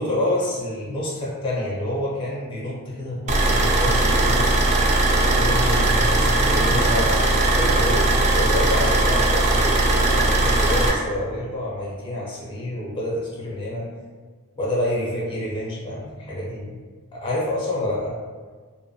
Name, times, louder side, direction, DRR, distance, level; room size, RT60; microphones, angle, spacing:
voice 1, 0.0-4.5 5.3-7.2 7.6-13.9 14.6-16.8 17.1-18.1, left 1 dB, 20° left, -6 dB, 0.5 m, -28 dB
sound 1, 3.3-10.9, right 2 dB, 30° right, 0.3 m, -19 dB
2.5 x 2.2 x 2.6 m, 1.5 s
head